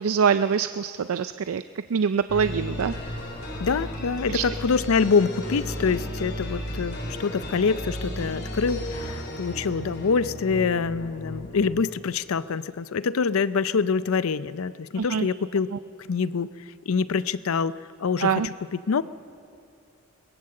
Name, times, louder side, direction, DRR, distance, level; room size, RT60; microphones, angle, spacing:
voice 1, 0.0-1.6 1.9-2.9 4.3-4.4 15.0-15.3 18.2-18.5, right 6 dB, 85° right, 12 dB, 0.4 m, -24 dB
sound 1, 2.3-12.1, equal, 50° left, 3.3 m, -34 dB
voice 2, 3.6-15.7 16.0-16.5 16.8-19.0, left 5 dB, 80° left, 16 dB, 0.5 m, -25 dB
21.0 x 21.0 x 7.6 m, 2.5 s
head